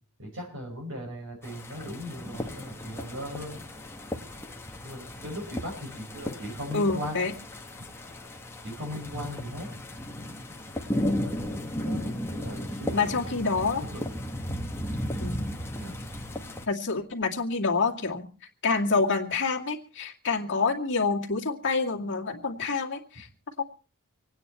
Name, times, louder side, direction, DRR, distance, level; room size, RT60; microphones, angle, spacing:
voice 1, 0.2-3.5 4.8-7.2 7.8-7.9 8.6-9.7 11.0-13.2 13.6-14.0 14.5-14.6 15.7-16.0, equal, 60° right, 0 dB, 6.4 m, -38 dB
sound 1, 1.4-16.7, left 1 dB, 10° left, 1.5 m, -35 dB
voice 2, 6.7-7.3 12.9-13.8 15.2-15.5 16.7-18.3 18.6-23.3 23.6-23.7, left 4 dB, 55° left, 1 dB, 2.3 m, -27 dB
26.0 x 9.6 x 4.3 m, 0.38 s
head